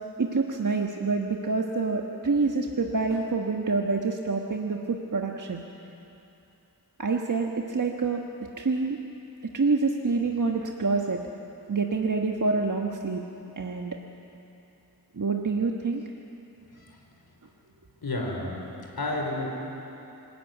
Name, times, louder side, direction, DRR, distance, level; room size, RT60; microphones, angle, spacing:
voice 1, 0.2-5.6 7.0-8.2 8.6-9.0 9.5-11.2 11.7-13.3 13.6-14.0 15.1-16.0, right 4 dB, 50° right, 1 dB, 1.4 m, -27 dB
voice 2, 18.0-18.6 19.0-19.5, left 2 dB, 65° left, 0 dB, 4.0 m, -30 dB
25.0 x 14.0 x 9.2 m, 2.9 s
cardioid pair, 50°, 40 cm